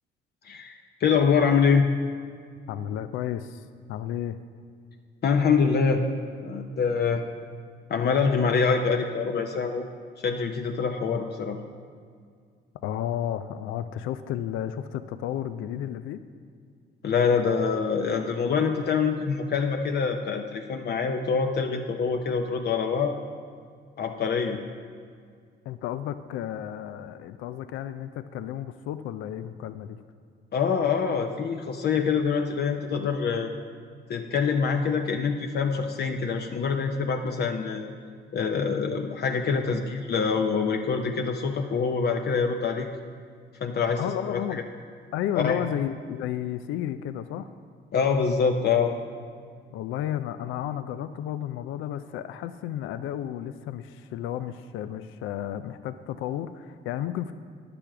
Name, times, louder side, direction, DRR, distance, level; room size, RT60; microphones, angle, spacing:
voice 1, 0.4-1.9 5.2-6.0 6.4-7.2 7.9-9.9 10.2-11.6 17.0-23.1 24.0-24.6 30.5-33.5 34.1-37.9 38.3-42.9 43.6-44.0 44.3-44.4 45.3-45.6 47.9-48.9, left 5 dB, 55° left, 3 dB, 0.7 m, -25 dB
voice 2, 2.7-4.4 12.8-16.2 25.7-30.0 44.0-44.6 45.1-47.5 49.7-57.3, left 11 dB, 90° left, 11 dB, 0.4 m, -32 dB
10.0 x 6.9 x 5.9 m, 2.1 s
cardioid pair, 90°, 20 cm